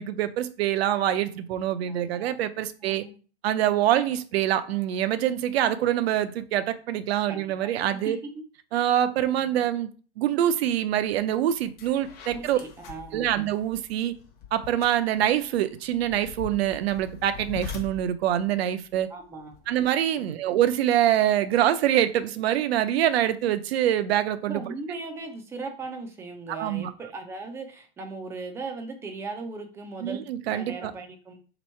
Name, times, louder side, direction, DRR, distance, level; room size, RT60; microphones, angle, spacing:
voice 1, 0.0-3.0 3.4-8.2 8.7-9.9 10.2-12.6 13.1-14.1 14.5-19.1 19.7-24.6 26.5-26.9 30.0-30.9, right 11 dB, 75° right, 12 dB, 0.6 m, -25 dB
voice 2, 1.9-2.3 2.8-3.1 7.3-7.7 8.0-8.2 9.4-9.6 12.3-13.3 19.1-19.6 20.2-20.4 24.5-31.4, right 3 dB, 10° right, 4 dB, 0.4 m, -38 dB
sound 1, 11.1-11.2 11.6-19.9, left 7 dB, 30° left, 0.9 m, -43 dB
3.4 x 3.0 x 4.3 m, 0.38 s
supercardioid pair, 145°, 31 cm